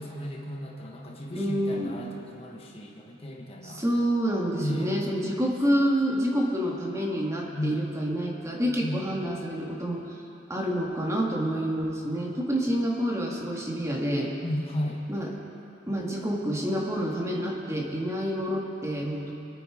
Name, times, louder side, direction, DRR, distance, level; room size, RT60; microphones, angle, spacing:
voice 1, 0.0-3.8 4.6-5.0 7.5-7.9 8.8-9.3 14.4-15.0, left 1 dB, 30° left, 0 dB, 1.2 m, -34 dB
voice 2, 1.3-2.0 3.6-10.0 10.5-14.3 15.1-15.3 15.9-19.3, equal, 15° right, -1 dB, 1.7 m, -28 dB
25.0 x 9.3 x 4.9 m, 2.7 s
head